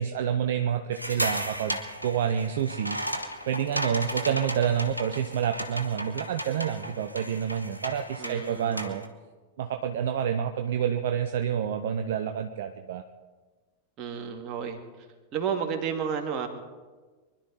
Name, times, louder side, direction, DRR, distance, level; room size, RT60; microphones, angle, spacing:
voice 1, 0.0-3.0 3.5-9.0 9.6-13.0, right 8 dB, 55° right, 7 dB, 0.7 m, -28 dB
sound 1, 0.9-9.1, equal, 90° right, 1.3 m, -35 dB
voice 2, 8.2-9.0 14.0-14.8 15.3-16.5, right 7 dB, 35° right, 3 dB, 2.3 m, -31 dB
24.5 x 12.0 x 4.1 m, 1.4 s
figure-of-eight pair, 90°, 0 cm